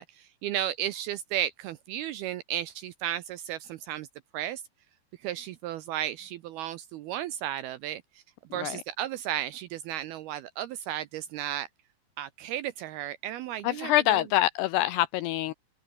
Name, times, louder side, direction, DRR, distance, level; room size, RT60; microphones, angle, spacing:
voice 1, 0.0-4.1 4.3-4.6 5.2-8.0 8.5-11.7 12.2-14.2, right 12 dB, 80° right, 2.3 m, -34 dB
voice 2, 13.6-15.5, left 15 dB, 85° left, 2.3 m, -25 dB
omnidirectional pair, 5.3 m